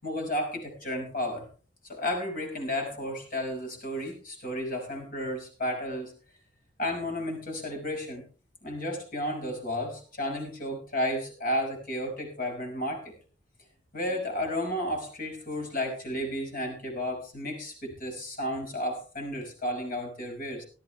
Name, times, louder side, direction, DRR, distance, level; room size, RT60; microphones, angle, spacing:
voice 1, 0.0-1.5 1.8-6.1 6.8-8.2 8.6-13.1 13.9-20.6, left 1 dB, 50° left, 3 dB, 5.8 m, -32 dB
17.5 x 13.0 x 3.4 m, 0.36 s
head